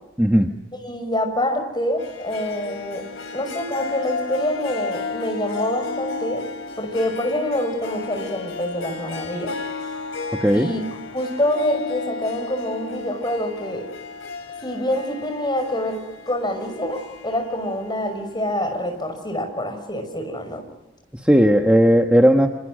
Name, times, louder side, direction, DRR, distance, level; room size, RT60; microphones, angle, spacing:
voice 1, 0.2-0.5 10.4-10.7 21.1-22.5, equal, 5° right, 3 dB, 1.3 m, -16 dB
voice 2, 0.8-3.1 3.3-6.4 6.8-9.5 10.5-10.8 11.1-13.9 14.6-20.6, left 1 dB, 20° left, 5 dB, 5.8 m, -26 dB
Harp, 2.0-18.8, left 4 dB, 85° left, 2.8 m, -33 dB
29.5 x 27.5 x 6.4 m, 1.1 s
head